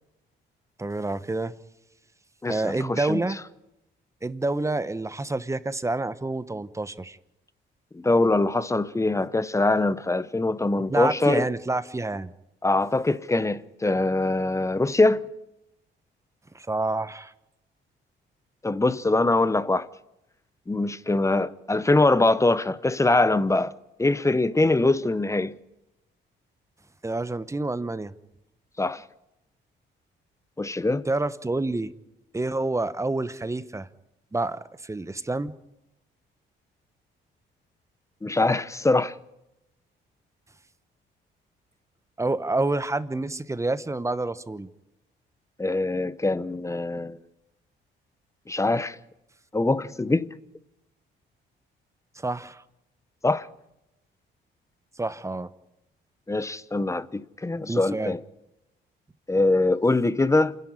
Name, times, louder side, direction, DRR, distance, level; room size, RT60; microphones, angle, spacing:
voice 1, 0.8-1.5 2.5-3.4 4.2-7.2 10.9-12.3 16.5-17.3 27.0-28.1 31.0-31.9 32.3-33.9 34.3-35.5 42.2-44.7 52.2-52.6 55.0-55.5 57.7-58.1, right 2 dB, 15° right, 1.0 m, -28 dB
voice 2, 2.4-3.2 7.9-11.5 12.6-15.3 18.6-19.9 20.7-23.7 24.0-25.5 28.8-29.0 30.6-31.0 38.2-39.1 45.6-47.2 48.5-49.0 49.5-50.4 53.2-53.5 56.3-58.2 59.3-60.6, left 2 dB, 15° left, 0.8 m, -23 dB
27.5 x 11.0 x 9.8 m
cardioid pair, 90°, 20 cm